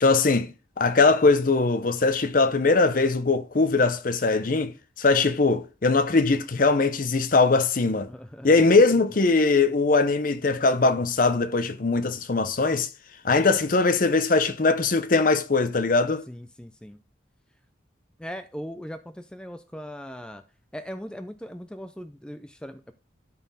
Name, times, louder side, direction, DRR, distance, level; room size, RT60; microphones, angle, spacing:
voice 1, 0.0-8.1 8.4-12.9 13.2-16.2, left 3 dB, 45° left, 0.6 m, -21 dB
voice 2, 8.1-8.8 16.3-17.0 18.2-20.4 20.7-22.9, equal, 5° left, 0.4 m, -39 dB
12.5 x 4.2 x 4.1 m
head